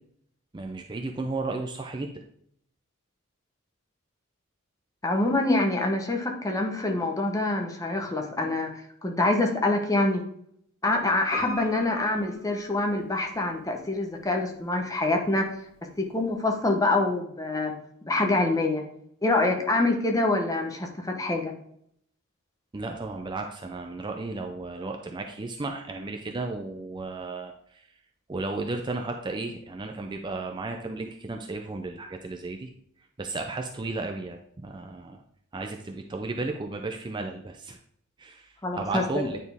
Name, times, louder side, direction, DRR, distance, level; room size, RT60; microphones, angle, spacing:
voice 1, 0.5-2.1 22.7-27.9 28.3-32.7 33.2-35.2 35.5-37.8 38.2-39.4, right 3 dB, 20° right, 3 dB, 0.4 m, -34 dB
voice 2, 5.0-10.2 10.8-15.5 16.0-17.7 18.0-18.8 19.2-21.5 38.6-39.3, left 2 dB, 15° left, 2 dB, 0.8 m, -25 dB
Piano, 11.3-13.4 13.6-13.7, left 2 dB, 45° left, 2.0 m, -39 dB
9.4 x 4.2 x 3.5 m, 0.70 s
head